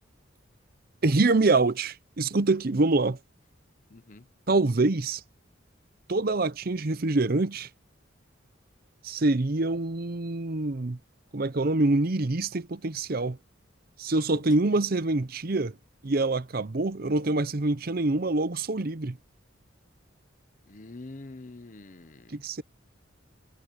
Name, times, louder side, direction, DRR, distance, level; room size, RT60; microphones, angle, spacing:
voice 1, 1.0-3.2 4.5-5.2 6.1-7.7 9.0-11.0 11.3-13.4 14.0-15.8 16.0-19.2 22.3-22.6, right 2 dB, 50° right, 0.7 m, -25 dB
voice 2, 3.9-4.3 14.3-14.4 20.7-22.6, left 2 dB, 40° left, 0.8 m, -45 dB
head